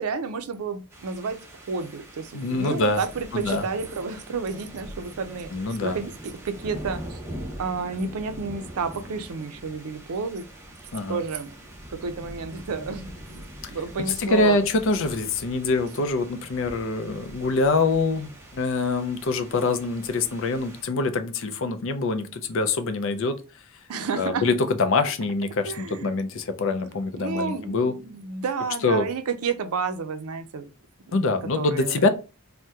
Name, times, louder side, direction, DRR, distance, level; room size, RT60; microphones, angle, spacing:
voice 1, 0.0-1.4 1.7-7.2 7.6-10.5 11.1-11.5 11.9-14.6 23.9-24.5 25.7-26.2 27.1-30.7 31.1-32.0, right 5 dB, 75° right, 0.5 m, -31 dB
sound 1, 0.9-20.8, right 1 dB, 10° right, 0.5 m, -43 dB
voice 2, 2.3-3.0 3.3-3.6 5.5-6.0 10.9-11.2 14.2-23.4 24.2-27.9 28.8-29.1 31.1-32.1, left 3 dB, 60° left, 0.4 m, -24 dB
2.8 x 2.1 x 3.4 m
head